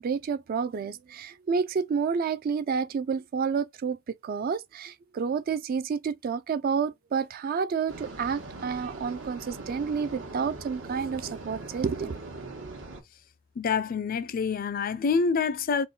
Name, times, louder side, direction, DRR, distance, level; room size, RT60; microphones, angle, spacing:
voice 1, 0.0-4.0 4.2-12.1, right 6 dB, 50° right, 0.3 m, -29 dB
sound 1, 7.9-13.0, right 2 dB, 80° right, 1.1 m, -41 dB
voice 2, 13.6-15.9, left 5 dB, 45° left, 0.4 m, -26 dB
3.8 x 2.1 x 3.7 m
head